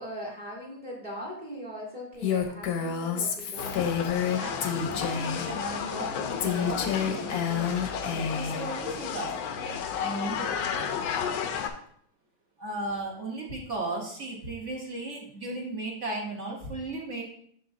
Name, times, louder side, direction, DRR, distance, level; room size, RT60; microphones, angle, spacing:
voice 1, 0.0-3.8, equal, 25° right, -3 dB, 1.3 m, -40 dB
Female speech woman speaking, 2.2-5.5 6.4-8.6, left 7 dB, 60° left, 1.1 m, -29 dB
sound 1, 3.6-11.7, left 7 dB, 90° left, 1.5 m, -33 dB
voice 2, 4.4-10.9 12.6-17.2, right 2 dB, 45° right, -1 dB, 1.0 m, -36 dB
7.1 x 6.3 x 2.6 m, 0.63 s
omnidirectional pair, 2.2 m